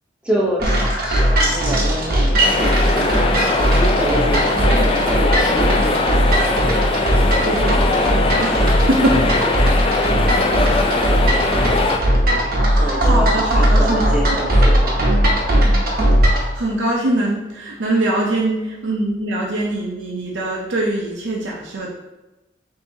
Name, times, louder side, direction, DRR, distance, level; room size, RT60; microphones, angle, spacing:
voice 1, 0.2-3.1 3.6-6.0 9.8-10.1 12.8-15.0, equal, 5° right, -5 dB, 0.7 m, -26 dB
sound 1, 0.6-16.5, equal, 55° right, 0.9 m, -18 dB
sound 2, 2.4-12.0, left 3 dB, 30° left, 0.3 m, -21 dB
voice 2, 4.5-4.9 7.4-9.4 9.9-10.2 12.7-14.6 16.3-21.9, right 1 dB, 85° right, -3 dB, 0.7 m, -23 dB
5.6 x 2.8 x 2.7 m, 1.0 s
head